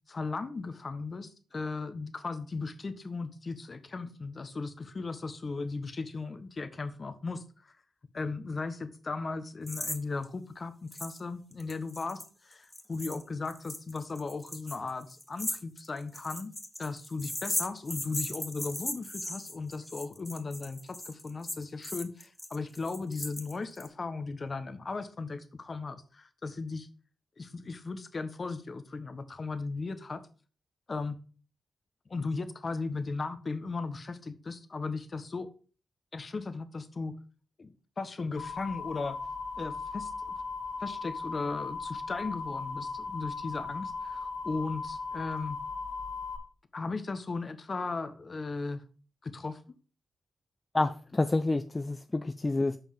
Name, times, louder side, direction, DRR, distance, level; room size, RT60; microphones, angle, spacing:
voice 1, 0.1-7.7 8.1-16.5 16.8-26.9 27.4-30.2 30.9-31.2 32.1-35.5 36.1-37.2 37.6-39.2 39.6-40.4 40.8-45.6 46.7-48.8 49.2-49.6, left 3 dB, 50° left, 1.2 m, -37 dB
sound 1, 9.7-10.0 10.2-10.3 10.9-11.2 11.5-23.9, left 1 dB, 10° left, 1.8 m, -38 dB
sound 2, 38.4-46.4, left 4 dB, 70° left, 2.1 m, -37 dB
voice 2, 50.7-52.8, left 2 dB, 30° left, 0.6 m, -28 dB
7.1 x 5.3 x 5.7 m
supercardioid pair, 40°, 0 cm